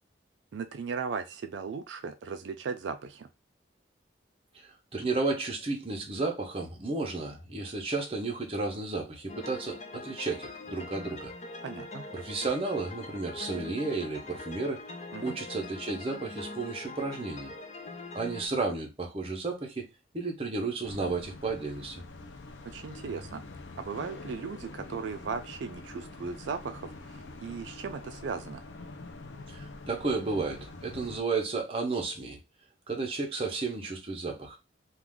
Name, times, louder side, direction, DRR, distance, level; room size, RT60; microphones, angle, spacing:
voice 1, 0.5-3.3 11.6-12.1 15.1-15.4 22.6-23.4 23.8-28.6, right 5 dB, 85° right, 0.4 m, -37 dB
voice 2, 4.5-11.3 12.1-14.8 15.2-17.5 18.1-19.9 20.1-22.0 29.5-32.4 32.9-34.6, right 3 dB, 30° right, 0.7 m, -33 dB
sound 1, 9.3-18.5, left 3 dB, 35° left, 0.4 m, -43 dB
sound 2, 20.8-31.2, left 2 dB, 90° left, 0.5 m, -45 dB
2.4 x 2.4 x 3.5 m
head